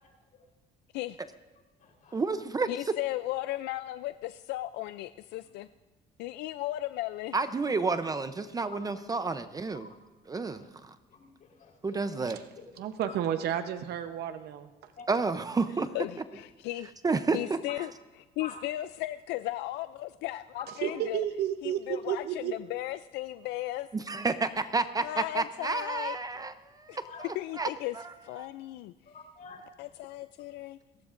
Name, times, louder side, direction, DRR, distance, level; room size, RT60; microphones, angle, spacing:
voice 1, 0.0-0.4 1.8-2.2 7.5-7.6 8.7-9.0 9.7-10.0 10.4-10.7 11.1-12.7 13.0-13.2 15.0-15.1 18.4-18.6 20.6-21.0 27.0-27.3 29.1-29.7, left 4 dB, 55° left, 0 dB, 4.0 m, -48 dB
voice 2, 2.1-2.7 7.3-9.9 10.3-11.0 11.8-12.4 15.1-15.9 17.0-17.6 23.9-27.0 27.6-27.7 27.9-28.0, right 4 dB, 20° right, 11 dB, 0.6 m, -30 dB
voice 3, 2.7-5.7 6.2-7.3 15.9-16.9 17.3-17.9 18.4-21.2 21.6-23.9 25.0-26.2 26.9-27.0 27.3-28.0 28.2-28.9 29.8-30.8, left 16 dB, 85° left, 12 dB, 0.4 m, -36 dB
voice 4, 12.8-14.7 20.8-22.6, right 10 dB, 75° right, 8 dB, 0.9 m, -32 dB
29.0 x 15.5 x 2.5 m, 1.2 s
cardioid pair, 110°, 17 cm